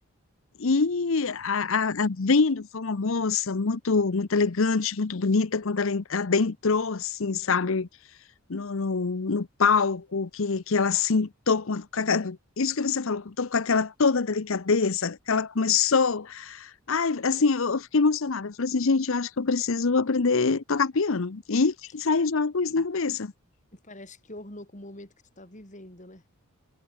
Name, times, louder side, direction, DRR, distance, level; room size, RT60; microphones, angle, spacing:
voice 1, 0.6-7.9 8.5-23.3, left 4 dB, 60° left, 0.7 m, -25 dB
voice 2, 23.7-26.2, left 1 dB, 35° left, 4.2 m, -44 dB
head